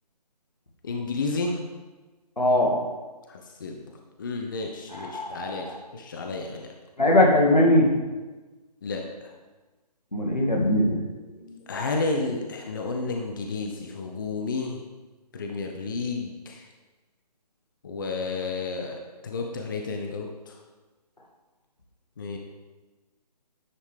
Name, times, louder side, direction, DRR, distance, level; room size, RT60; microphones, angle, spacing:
voice 1, 0.8-1.6 3.3-3.8 4.2-5.7 5.9-6.7 8.8-9.0 11.7-14.8 15.3-16.6 17.8-19.0 19.2-20.3 22.2-22.4, left 3 dB, 30° left, 2 dB, 0.5 m, -31 dB
voice 2, 2.4-2.7 4.9-5.8 7.0-7.9 10.1-11.0, left 1 dB, 85° left, 0 dB, 1.8 m, -21 dB
9.6 x 5.0 x 3.4 m, 1.3 s
figure-of-eight pair, 145°, 21 cm